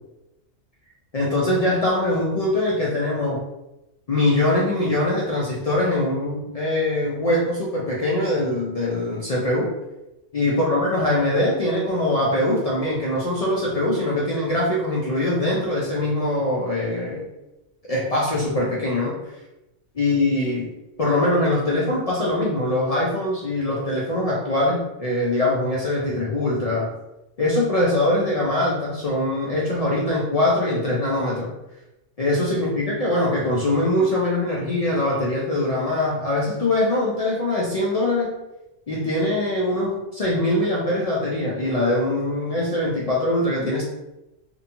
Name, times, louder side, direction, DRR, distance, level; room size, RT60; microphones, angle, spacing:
voice 1, 1.1-3.4 4.1-9.7 10.3-17.2 17.9-19.2 20.0-20.7 21.0-26.9 27.4-31.5 32.2-38.3 38.9-43.8, left 1 dB, 75° left, -5 dB, 0.3 m, -22 dB
2.6 x 2.2 x 2.8 m, 0.94 s
omnidirectional pair, 1.3 m